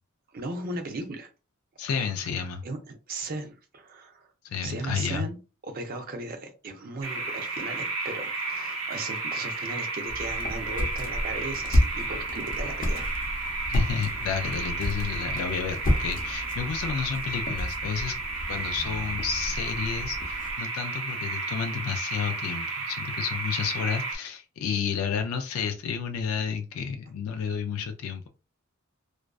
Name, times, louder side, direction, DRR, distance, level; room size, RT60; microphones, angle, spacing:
voice 1, 0.3-1.3 2.6-4.3 4.6-5.4 5.6-13.1, right 2 dB, 45° right, 0.5 m, -37 dB
voice 2, 1.8-2.6 4.4-5.3 13.7-18.2 18.5-28.3, left 6 dB, 85° left, 0.3 m, -31 dB
sound 1, 7.0-24.2, right 3 dB, 85° right, 0.9 m, -33 dB
sound 2, 10.1-20.6, equal, 40° left, 0.6 m, -31 dB
2.4 x 2.2 x 2.3 m
head